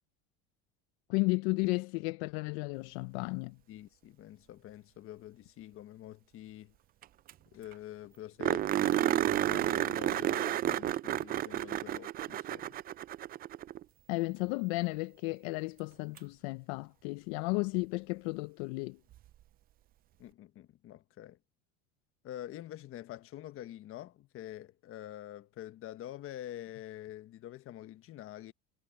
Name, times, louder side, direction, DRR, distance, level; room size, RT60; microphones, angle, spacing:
voice 1, 1.1-3.6 14.1-19.0, left 26 dB, 75° left, 0.6 m, -33 dB
voice 2, 3.7-6.7 7.5-12.8 20.2-21.4 22.2-28.5, left 13 dB, 45° left, 1.2 m, -46 dB
sound 1, 7.0-7.1 7.3-7.4 7.7-7.8 8.4-13.8 16.2-16.3 19.1-19.2, right 13 dB, 30° right, 0.4 m, -31 dB
supercardioid pair, 125°, 31 cm